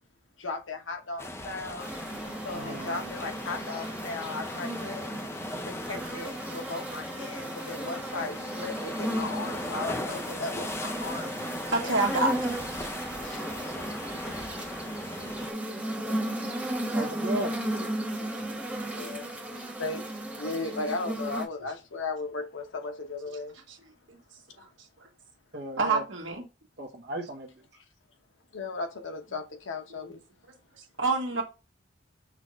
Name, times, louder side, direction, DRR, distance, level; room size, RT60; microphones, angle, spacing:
voice 1, 0.4-1.9 2.4-5.1 5.6-11.4 11.8-12.1 13.2-13.5 16.1-16.2 18.9-23.6 24.5-24.6 28.5-30.2, left 3 dB, 90° left, 1.0 m, -36 dB
sound 1, 1.2-15.5, left 1 dB, 15° left, 0.5 m, -38 dB
sound 2, 1.8-21.4, right 1 dB, 5° right, 1.1 m, -35 dB
voice 2, 2.5-3.2 16.9-17.5 25.5-26.0 26.8-27.5, right 1 dB, 60° right, 1.0 m, -36 dB
voice 3, 11.7-12.3 15.8-15.9 18.2-18.5 19.0-19.1 25.8-26.4 31.0-31.4, right 3 dB, 80° right, 1.4 m, -27 dB
6.0 x 2.5 x 3.1 m
head